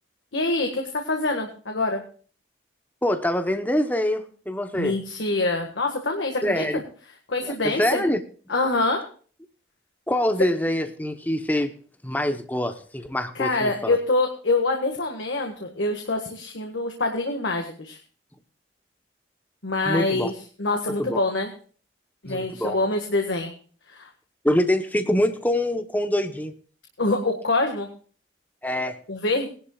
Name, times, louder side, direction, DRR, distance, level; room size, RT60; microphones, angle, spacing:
voice 1, 0.3-2.0 4.7-6.6 7.3-8.0 8.5-9.0 13.4-18.0 19.6-20.3 20.6-21.5 22.2-23.5 23.9-24.1 27.0-27.9 29.1-29.5, left 2 dB, 85° left, 3 dB, 1.7 m, -25 dB
voice 2, 3.0-5.0 6.4-6.8 7.5-8.2 10.1-11.7 12.0-13.9 19.9-20.3 20.9-21.2 22.3-22.8 24.4-26.5 28.6-29.0, left 1 dB, 10° left, 7 dB, 0.9 m, -25 dB
20.0 x 11.5 x 2.4 m, 0.41 s
head